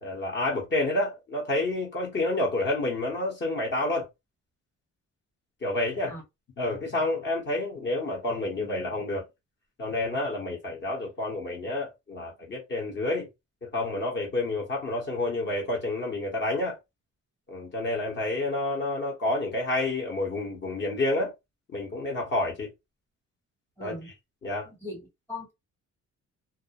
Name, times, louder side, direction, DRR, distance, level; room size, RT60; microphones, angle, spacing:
voice 1, 0.0-4.1 5.6-6.1 6.6-9.2 9.8-13.3 13.6-16.8 17.5-21.3 21.7-22.7 23.8-23.9 24.4-24.7, left 2 dB, 40° left, 0.9 m, -29 dB
voice 2, 23.8-24.1 24.6-25.5, left 2 dB, 5° left, 0.9 m, -39 dB
2.4 x 2.0 x 2.8 m
cardioid pair, 145°, 30 cm